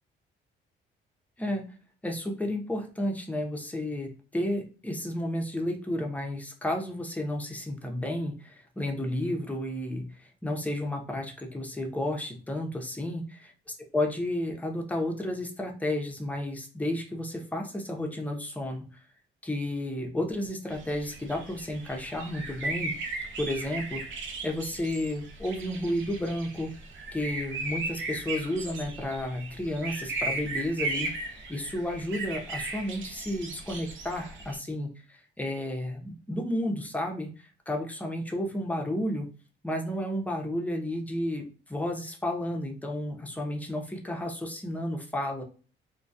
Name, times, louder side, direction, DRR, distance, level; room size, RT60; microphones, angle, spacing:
voice 1, 2.0-13.2 13.9-18.9 19.4-23.1 23.4-24.0 24.4-26.7 27.1-37.3 37.7-39.3 39.6-45.4, left 1 dB, 5° left, 2 dB, 0.6 m, -32 dB
sound 1, 20.7-34.6, right 2 dB, 70° right, 0.6 m, -37 dB
2.3 x 2.2 x 2.6 m, 0.37 s
cardioid pair, 90°, 20 cm